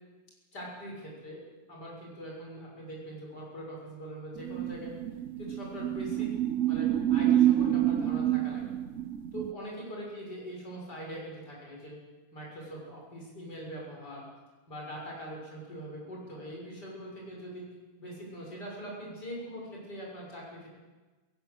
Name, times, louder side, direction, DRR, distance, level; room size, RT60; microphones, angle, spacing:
voice 1, 0.5-5.0 5.4-6.4 6.7-8.6 9.3-12.0 12.3-14.2 14.7-17.7 18.0-20.7, right 1 dB, 85° left, -3 dB, 7.4 m, -42 dB
sound 1, 4.4-9.5, right 12 dB, 55° right, 1.1 m, -28 dB
22.0 x 17.5 x 8.2 m, 1.3 s
omnidirectional pair, 1.7 m